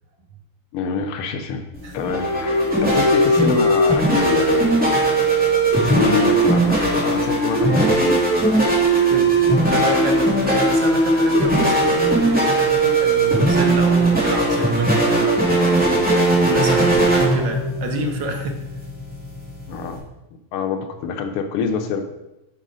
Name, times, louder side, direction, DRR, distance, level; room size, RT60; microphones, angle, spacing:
voice 1, 0.7-1.7 1.9-4.9 5.8-8.3 9.1-9.8 19.7-20.0 20.5-22.0, left 5 dB, 85° left, 6 dB, 1.7 m, -25 dB
sound 1, 1.7-20.0, right 2 dB, 5° right, 2.4 m, -18 dB
voice 2, 9.1-15.4 16.5-18.6, right 3 dB, 65° right, 4 dB, 1.3 m, -29 dB
8.1 x 4.0 x 5.0 m, 0.92 s
omnidirectional pair, 2.4 m